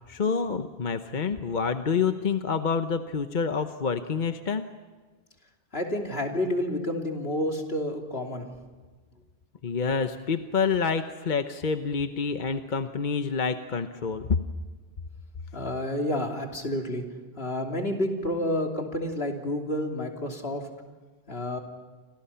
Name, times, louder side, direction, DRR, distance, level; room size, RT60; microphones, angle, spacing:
voice 1, 0.1-4.6 9.6-14.4, left 5 dB, 50° left, 8 dB, 1.0 m, -27 dB
voice 2, 5.7-8.5 15.5-17.0 17.4-20.7 21.3-21.6, left 1 dB, 75° left, 2 dB, 3.3 m, -29 dB
30.0 x 26.0 x 5.7 m, 1.4 s
omnidirectional pair, 1.1 m